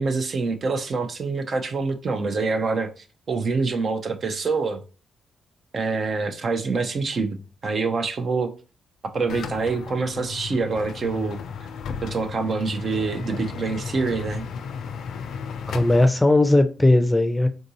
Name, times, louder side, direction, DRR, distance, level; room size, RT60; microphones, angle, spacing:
voice 1, 0.0-4.8 5.7-8.5 9.1-11.4 12.0-14.5, right 4 dB, 55° right, 0.5 m, -26 dB
sound 1, 9.3-16.1, left 6 dB, 75° left, 0.3 m, -34 dB
voice 2, 15.7-17.5, left 2 dB, 10° left, 0.5 m, -18 dB
3.6 x 2.6 x 2.7 m
supercardioid pair, 55°, 0 cm